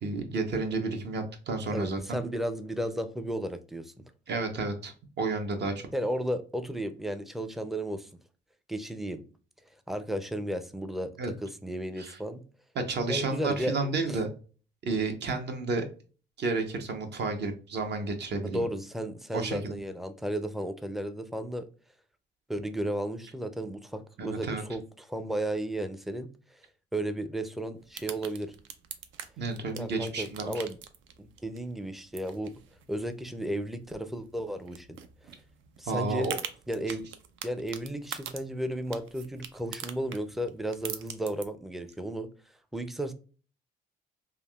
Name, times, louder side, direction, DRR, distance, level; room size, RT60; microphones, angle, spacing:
voice 1, 0.0-2.2 4.3-5.7 11.2-11.3 12.0-12.2 12.7-14.3 14.8-15.9 16.4-18.7 19.3-19.8 24.2-24.6 29.4-30.6 35.9-36.4, right 3 dB, 60° right, 0.8 m, -31 dB
voice 2, 1.7-3.9 5.9-8.1 8.7-9.2 9.9-11.1 11.4-12.4 13.1-13.8 14.1-14.2 18.4-21.7 22.5-26.6 26.9-28.5 29.8-30.8 31.2-32.5 32.9-35.0 35.8-36.3 36.7-37.1 37.4-42.3 42.7-43.1, right 1 dB, ahead, 0.4 m, -34 dB
sound 1, 27.8-41.4, right 8 dB, 75° right, 0.5 m, -45 dB
3.5 x 2.3 x 2.2 m
cardioid pair, 90°, 20 cm